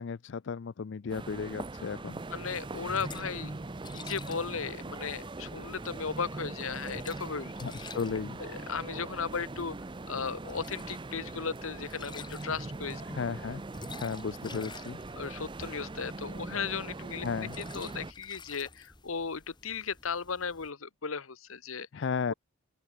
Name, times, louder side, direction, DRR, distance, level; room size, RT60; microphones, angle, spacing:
voice 1, 0.0-2.2 7.6-8.4 13.1-13.6 14.0-15.0 17.2-17.6 21.9-22.3, left 5 dB, 55° left, 0.4 m, -34 dB
sound 1, 1.1-18.1, right 2 dB, 25° right, 0.5 m, -41 dB
sound 2, 2.1-20.7, left 3 dB, 20° left, 3.0 m, -51 dB
voice 2, 2.3-3.6 3.9-7.5 8.4-9.7 10.1-13.0 15.2-17.3 17.6-21.9, left 5 dB, 75° left, 1.1 m, -36 dB
open air
head